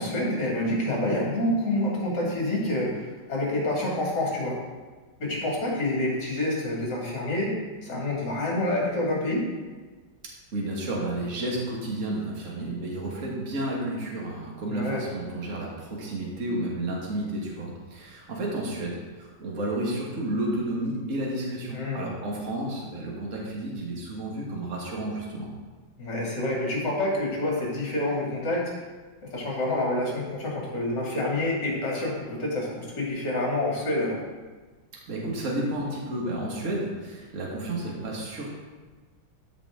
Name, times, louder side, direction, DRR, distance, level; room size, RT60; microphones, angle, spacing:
voice 1, 0.0-4.6 5.2-7.6 7.8-9.5 14.7-15.0 21.7-22.1 26.0-28.7 29.3-34.2, left 1 dB, 60° left, -4 dB, 3.0 m, -27 dB
voice 2, 10.5-25.5 35.1-38.5, right 1 dB, 40° right, -3 dB, 1.9 m, -31 dB
13.5 x 5.0 x 3.7 m, 1.3 s
omnidirectional pair, 2.2 m